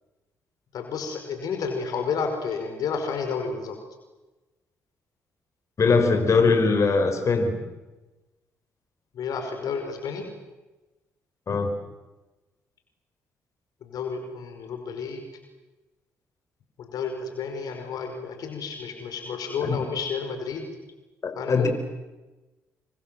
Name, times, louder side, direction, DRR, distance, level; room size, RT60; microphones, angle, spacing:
voice 1, 0.7-3.8 9.1-10.3 13.8-15.3 16.8-20.7 21.4-21.7, left 5 dB, 70° left, 5 dB, 5.2 m, -31 dB
voice 2, 5.8-7.5 11.5-11.7 19.6-19.8 21.2-21.7, left 4 dB, 50° left, 6 dB, 5.3 m, -21 dB
28.5 x 24.0 x 7.7 m, 1.1 s
hypercardioid pair, 50°, 7 cm